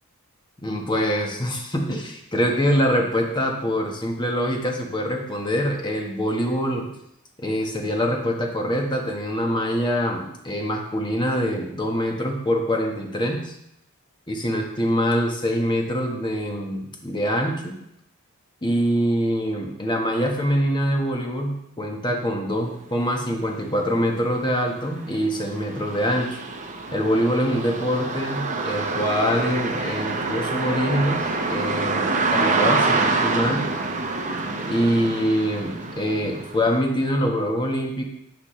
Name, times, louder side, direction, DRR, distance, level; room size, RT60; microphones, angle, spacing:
voice 1, 0.6-6.9 7.4-13.5 14.3-17.7 18.6-26.3 26.9-33.7 34.7-38.0, equal, 20° left, 1 dB, 1.2 m, -24 dB
sound 1, 23.4-23.5 24.0-36.8, right 3 dB, 35° right, 0.9 m, -26 dB
10.0 x 6.3 x 3.2 m, 0.80 s
head